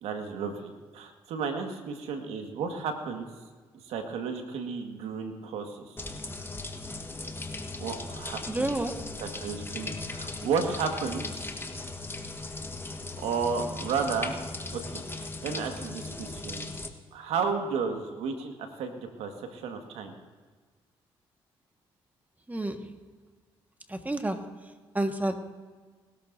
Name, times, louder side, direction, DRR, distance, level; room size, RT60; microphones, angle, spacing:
voice 1, 0.0-3.3 3.8-6.0 7.8-8.8 9.2-11.5 13.2-14.4 14.7-16.7 17.1-20.1, right 5 dB, 80° right, 4 dB, 1.7 m, -33 dB
sound 1, 6.0-16.9, left 3 dB, 20° left, 1.4 m, -38 dB
voice 2, 8.5-9.0 22.5-22.9 23.9-24.5 24.9-25.4, right 1 dB, 15° right, 6 dB, 1.6 m, -30 dB
20.0 x 13.5 x 2.7 m, 1.5 s
supercardioid pair, 60°, 10 cm